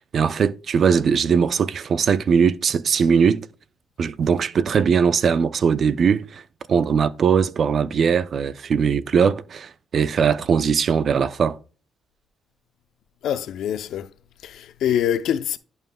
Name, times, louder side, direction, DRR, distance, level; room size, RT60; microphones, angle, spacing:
voice 1, 0.0-3.5 4.0-6.4 6.7-11.6, right 6 dB, 55° right, 0.5 m, -20 dB
voice 2, 13.2-14.1 14.4-15.6, left 10 dB, 80° left, 0.6 m, -24 dB
11.0 x 5.4 x 2.2 m
cardioid pair, 90°, 0 cm